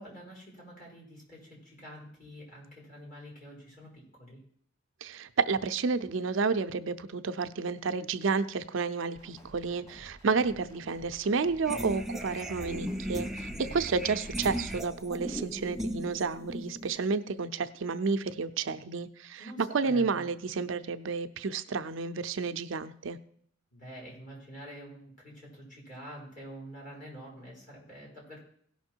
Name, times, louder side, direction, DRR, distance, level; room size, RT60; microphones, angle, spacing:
voice 1, 0.0-4.4 13.5-13.6 19.4-20.2 23.7-28.4, right 1 dB, 45° left, -4 dB, 4.7 m, -47 dB
voice 2, 5.0-23.2, right 4 dB, 70° right, 10 dB, 0.5 m, -31 dB
sound 1, 9.1-14.8, equal, 15° left, 2.0 m, -53 dB
sound 2, 11.7-17.0, equal, ahead, 0.5 m, -37 dB
17.0 x 5.8 x 4.5 m, 0.63 s
head